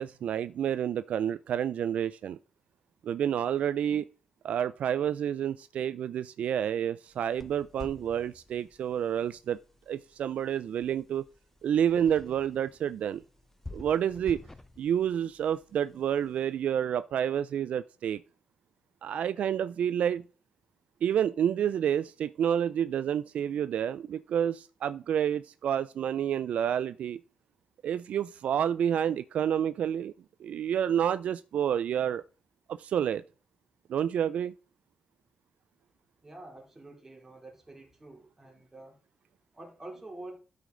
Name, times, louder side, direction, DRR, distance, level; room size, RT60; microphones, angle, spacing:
voice 1, 0.0-2.4 3.0-4.1 4.4-9.6 9.9-11.2 11.6-13.2 13.7-14.4 14.8-18.2 19.0-20.2 21.0-27.2 27.8-30.1 30.4-32.2 32.7-33.2 33.9-34.5, right 9 dB, 75° right, 0.3 m, -29 dB
sound 1, 7.1-16.5, left 2 dB, 15° left, 0.6 m, -50 dB
voice 2, 36.2-38.9 39.5-40.4, right 2 dB, 20° right, 2.9 m, -47 dB
12.5 x 5.1 x 3.8 m
cardioid pair, 115°, 2 cm